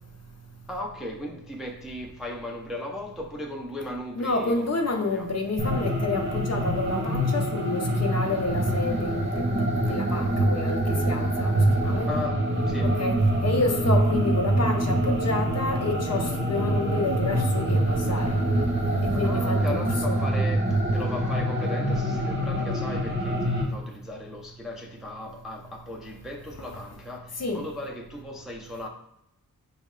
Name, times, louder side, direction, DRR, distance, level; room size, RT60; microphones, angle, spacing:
voice 1, 0.7-4.7 5.0-5.3 12.1-12.9 19.2-28.9, left 1 dB, ahead, 0.4 m, -37 dB
voice 2, 4.2-12.1 12.8-18.4 19.0-20.2 27.4-27.6, left 3 dB, 45° left, 0.6 m, -29 dB
sound 1, 5.6-23.6, right 1 dB, 30° right, 1.0 m, -25 dB
4.4 x 2.1 x 3.6 m
wide cardioid pair, 85°, 37 cm